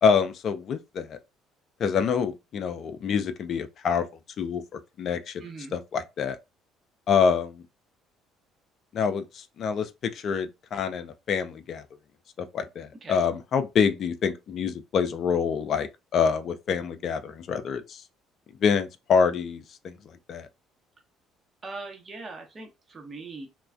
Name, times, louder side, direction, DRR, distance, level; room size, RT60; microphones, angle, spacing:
voice 1, 0.0-1.2 1.8-4.0 4.4-4.6 5.0-5.4 5.7-6.4 7.1-7.6 8.9-11.8 12.4-18.0 18.6-20.0 20.3-20.5, left 6 dB, 50° left, 0.4 m, -26 dB
voice 2, 5.4-5.8 13.0-13.2 21.6-23.5, right 3 dB, 35° right, 0.8 m, -40 dB
3.0 x 2.2 x 2.4 m
figure-of-eight pair, 55°, 0 cm